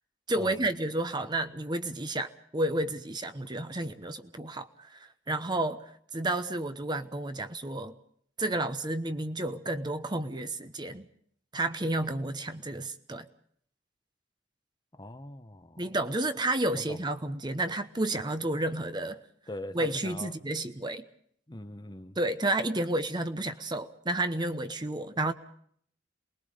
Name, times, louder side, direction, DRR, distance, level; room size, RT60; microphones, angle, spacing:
voice 1, 0.3-7.9 8.4-11.1 11.5-13.3 15.8-19.2 19.7-21.0 22.2-25.3, right 1 dB, 25° right, 10 dB, 1.0 m, -31 dB
voice 2, 14.9-15.8 16.7-17.0 19.5-20.3 21.5-22.2, left 1 dB, 25° left, 10 dB, 1.0 m, -42 dB
28.0 x 21.0 x 5.1 m, 0.62 s
head